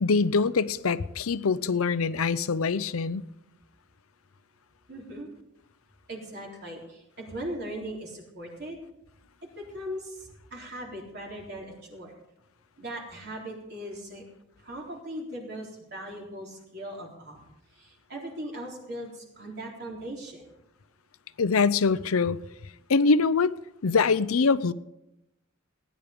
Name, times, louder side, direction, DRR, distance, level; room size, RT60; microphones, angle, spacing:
voice 1, 0.0-3.2 21.4-22.4 22.9-23.5 23.8-24.7, left 4 dB, 80° left, 0.6 m, -23 dB
voice 2, 4.9-5.3 6.1-8.8 9.6-12.1 12.8-14.2 14.6-17.4 17.7-20.5, right 1 dB, 50° right, 3.8 m, -39 dB
18.0 x 10.0 x 5.3 m
head